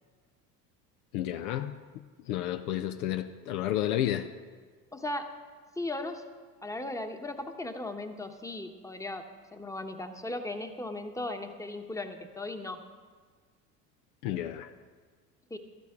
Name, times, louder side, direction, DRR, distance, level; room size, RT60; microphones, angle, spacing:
voice 1, 1.1-4.3 14.2-14.7, left 12 dB, 70° left, 9 dB, 0.7 m, -32 dB
voice 2, 4.9-5.4 5.8-6.2 6.6-12.8 15.5-15.6, left 2 dB, 5° left, 6 dB, 1.0 m, -37 dB
13.5 x 12.5 x 3.7 m, 1.5 s
hypercardioid pair, 75°, 46 cm